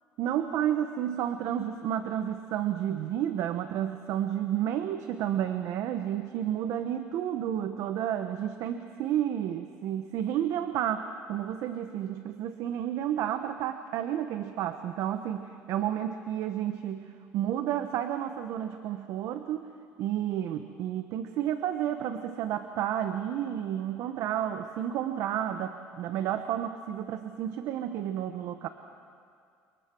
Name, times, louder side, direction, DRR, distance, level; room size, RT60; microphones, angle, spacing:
voice 1, 0.2-17.1 17.3-19.7 20.0-28.7, right 10 dB, 65° right, 8 dB, 1.2 m, -31 dB
28.5 x 25.0 x 6.2 m, 2.3 s
cardioid pair, 110°, 6 cm